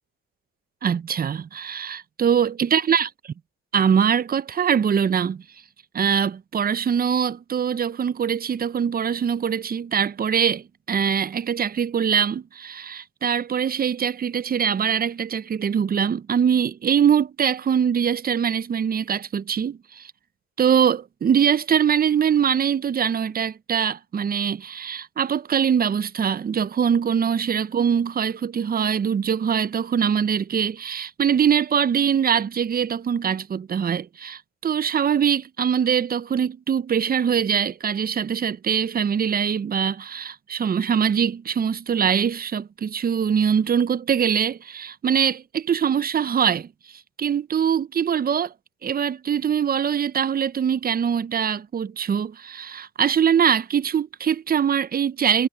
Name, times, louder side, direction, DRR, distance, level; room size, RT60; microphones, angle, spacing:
voice 1, 0.8-3.1 3.7-5.4 5.9-20.1 20.6-46.7 47.2-48.5 48.8-55.5, right 8 dB, 30° right, 0.5 m, -23 dB
cardioid pair, 90°, 30 cm